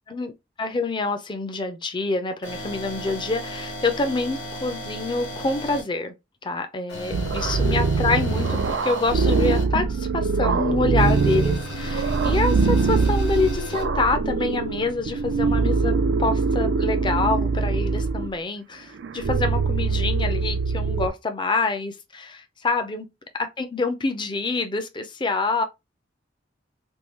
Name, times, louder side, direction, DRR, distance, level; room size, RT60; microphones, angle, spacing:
voice 1, 0.6-6.1 6.4-23.1 23.3-25.6, left 3 dB, 25° left, 0.5 m, -26 dB
sound 1, 2.4-5.8 6.9-9.6 11.0-13.8, left 1 dB, 85° left, 2.0 m, -36 dB
sound 2, 7.1-18.3 19.0-21.1, right 4 dB, 75° right, 0.4 m, -23 dB
3.6 x 2.3 x 3.0 m
head